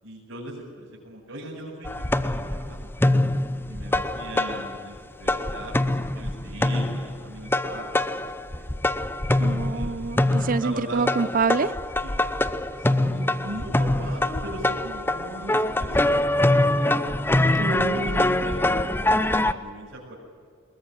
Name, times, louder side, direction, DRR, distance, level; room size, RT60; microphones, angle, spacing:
voice 1, 0.0-3.1 3.7-8.8 9.3-9.9 10.2-11.0 12.0-12.1 12.8-17.3 17.9-20.1, right 1 dB, 80° right, -7 dB, 6.9 m, -39 dB
sound 1, 1.8-5.0 5.3-19.5, left 1 dB, 10° left, 0.7 m, -24 dB
voice 2, 9.4-11.7 17.5-18.3, right 4 dB, 45° right, 17 dB, 0.6 m, -26 dB
21.5 x 20.0 x 9.2 m, 2.1 s
head